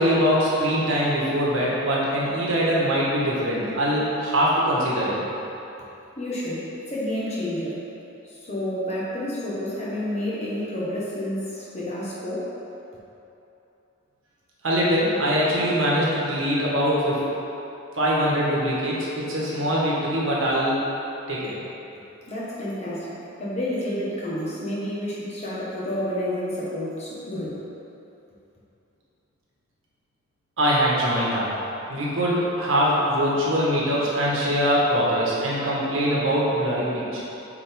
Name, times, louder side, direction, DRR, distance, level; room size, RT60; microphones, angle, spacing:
voice 1, 0.0-5.1 14.6-17.3 18.0-20.8 21.3-21.6 30.6-31.5 31.9-37.2, equal, 75° right, -6 dB, 1.5 m, -22 dB
voice 2, 6.2-7.8 8.2-12.5 22.3-27.6, left 1 dB, 30° left, -7 dB, 1.4 m, -30 dB
7.6 x 4.7 x 3.7 m, 3.0 s
head